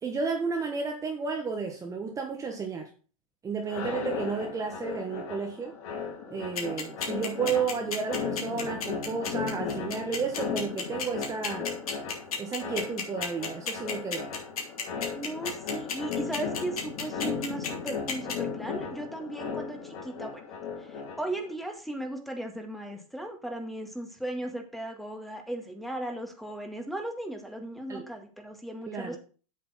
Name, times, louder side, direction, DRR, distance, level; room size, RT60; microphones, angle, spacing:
voice 1, 0.0-2.9 3.4-5.7 6.3-11.7 12.4-14.3 27.9-28.0 28.9-29.2, right 5 dB, 15° right, 1.4 m, -32 dB
sound 1, 3.6-21.5, left 6 dB, 55° left, 3.9 m, -36 dB
sound 2, 6.6-18.3, left 6 dB, 85° left, 3.4 m, -32 dB
voice 2, 15.1-20.4 20.8-29.2, right 1 dB, ahead, 1.9 m, -37 dB
8.0 x 6.8 x 5.7 m
hypercardioid pair, 125°, 18 cm